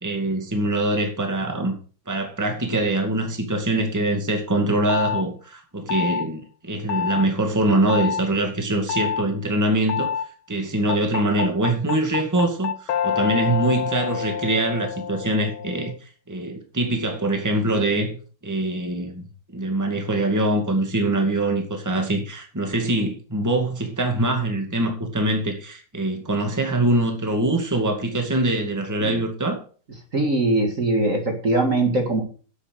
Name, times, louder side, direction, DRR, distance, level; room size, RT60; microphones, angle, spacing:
voice 1, 0.0-1.7 2.1-10.1 10.5-18.2 18.4-19.2 19.5-29.6, right 1 dB, 10° right, 1.9 m, -23 dB
sound 1, 4.9-5.2 5.9-6.3 6.9-7.3 7.9-8.2 8.9-9.2 9.9-10.3 10.9-16.0, left 8 dB, 90° left, 1.7 m, -27 dB
voice 2, 30.1-32.2, right 2 dB, 40° right, 2.1 m, -21 dB
9.8 x 8.3 x 6.4 m
omnidirectional pair, 2.2 m